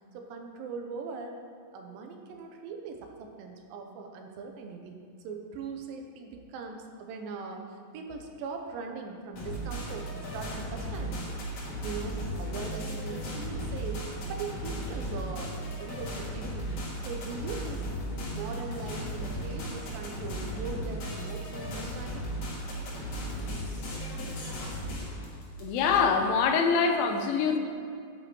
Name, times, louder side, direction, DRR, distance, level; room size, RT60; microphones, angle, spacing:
voice 1, 0.1-1.4 1.7-11.4 11.8-17.9 18.3-22.3, right 4 dB, 80° right, 3 dB, 2.4 m, -40 dB
sound 1, 9.3-26.0, equal, 55° left, 2.1 m, -36 dB
voice 2, 25.6-27.6, left 5 dB, 80° left, 5 dB, 2.3 m, -24 dB
8.6 x 8.1 x 3.0 m, 2.4 s
omnidirectional pair, 4.2 m